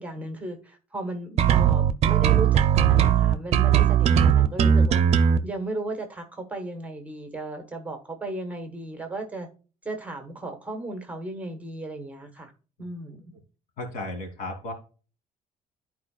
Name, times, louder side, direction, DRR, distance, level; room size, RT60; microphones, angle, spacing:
voice 1, 0.0-9.5 9.8-12.5 12.8-13.2, right 2 dB, 10° right, 1.3 m, -35 dB
sound 1, 1.4-5.4, right 9 dB, 50° right, 0.6 m, -19 dB
voice 2, 13.8-14.7, left 2 dB, 70° left, 2.9 m, -34 dB
13.0 x 4.6 x 2.4 m
cardioid pair, 170°, 14 cm